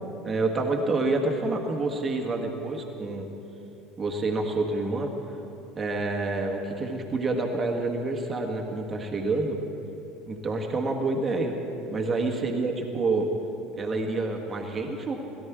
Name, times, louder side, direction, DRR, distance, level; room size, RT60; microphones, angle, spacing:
voice 1, 0.2-3.3 4.0-5.1 5.7-9.6 10.3-11.6 11.9-13.3 13.7-15.1, right 3 dB, 25° right, 1 dB, 1.6 m, -28 dB
17.0 x 12.5 x 4.8 m, 2.9 s
figure-of-eight pair, 70°, 0 cm